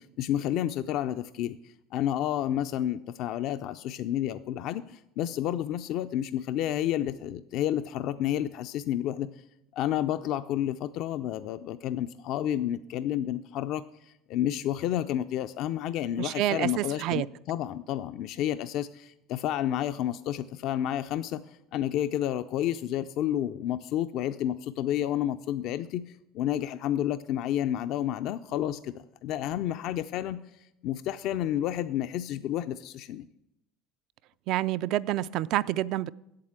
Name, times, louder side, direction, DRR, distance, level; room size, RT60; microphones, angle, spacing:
voice 1, 0.2-9.3 9.7-33.3, left 11 dB, 60° left, 11 dB, 0.4 m, -30 dB
voice 2, 16.2-17.3 34.5-36.1, right 14 dB, 60° right, 15 dB, 0.3 m, -28 dB
8.0 x 7.6 x 8.7 m, 0.86 s
supercardioid pair, 115°, 0 cm